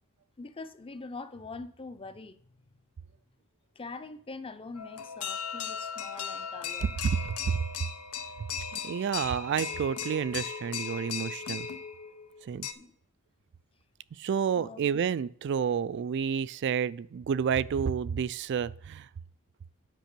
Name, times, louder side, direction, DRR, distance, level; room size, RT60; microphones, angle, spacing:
voice 1, 0.4-2.4 3.8-6.9 12.8-12.9 14.6-14.8, left 3 dB, 25° left, 11 dB, 0.6 m, -43 dB
sound 1, 4.7-12.7, left 7 dB, 85° left, 0.9 m, -37 dB
voice 2, 7.0-7.6 8.4-8.5 8.8-11.7 12.4-12.7 14.2-19.1, right 7 dB, 50° right, 18 dB, 0.3 m, -30 dB
9.1 x 5.2 x 6.8 m, 0.63 s
head